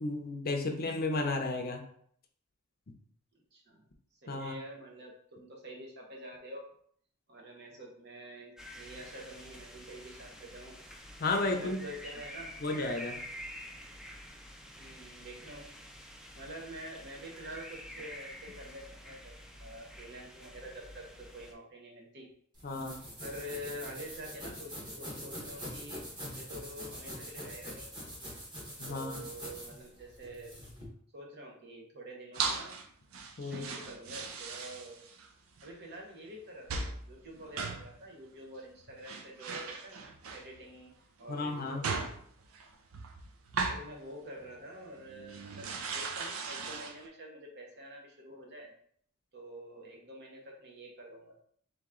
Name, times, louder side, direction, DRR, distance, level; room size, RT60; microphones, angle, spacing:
voice 1, 0.0-1.8 4.3-4.6 11.2-11.8 12.6-13.2 22.6-23.0 28.8-29.2 33.4-33.7 41.3-41.8, left 2 dB, 45° left, 4 dB, 0.6 m, -33 dB
voice 2, 3.5-3.8 4.2-6.7 7.3-10.7 11.5-12.5 14.8-15.7 16.3-19.3 19.6-22.3 23.2-24.7 25.0-26.1 26.3-27.9 28.9-30.5 31.1-32.7 33.5-35.0 35.6-40.9 41.2-42.1 43.7-48.7 49.3-51.4, equal, 50° right, 0 dB, 1.0 m, -47 dB
sound 1, 8.6-21.5, equal, 5° right, 0.4 m, -48 dB
sound 2, 22.5-30.8, equal, 20° right, 1.2 m, -44 dB
sound 3, 32.3-32.9 33.1-35.3 35.6-35.7 36.7-37.0 37.3-38.0 38.7-38.8 39.0-40.7 41.4-43.9 44.4-44.6 45.0-47.1, right 4 dB, 70° right, 0.5 m, -38 dB
3.3 x 3.0 x 3.7 m, 0.63 s
head